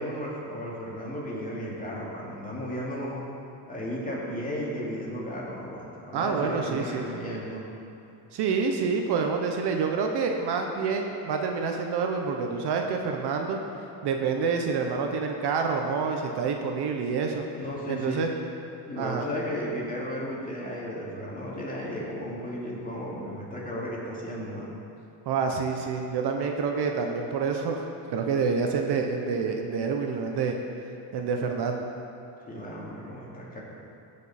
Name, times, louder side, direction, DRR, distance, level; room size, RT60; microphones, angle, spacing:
voice 1, 0.0-3.2 3.7-7.6 17.6-18.2 18.8-24.7 32.4-33.6, equal, 20° left, -5 dB, 2.5 m, -34 dB
voice 2, 6.1-7.0 8.3-13.6 14.0-17.4 17.9-18.3 19.0-19.3 25.3-27.9 28.1-30.6 31.1-31.8, right 5 dB, 60° right, 3 dB, 1.0 m, -27 dB
14.5 x 5.3 x 4.3 m, 2.8 s
cardioid pair, 100°, 45 cm